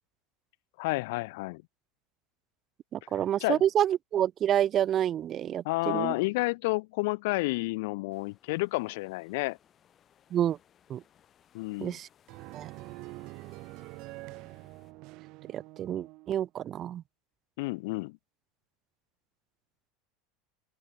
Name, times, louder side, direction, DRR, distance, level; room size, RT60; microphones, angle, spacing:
voice 1, 0.8-1.6 3.4-3.6 5.6-9.6 11.5-12.0 17.6-18.2, left 24 dB, 75° left, 0.3 m, -30 dB
voice 2, 2.9-6.1 10.3-10.6 10.9-11.0 11.8-12.1 12.5-12.7 15.5-17.0, right 10 dB, 40° right, 0.4 m, -28 dB
sound 1, 8.1-14.9, left 9 dB, 35° left, 5.5 m, -65 dB
sound 2, 12.3-16.4, right 23 dB, 60° right, 0.8 m, -45 dB
open air
supercardioid pair, 105°, 0 cm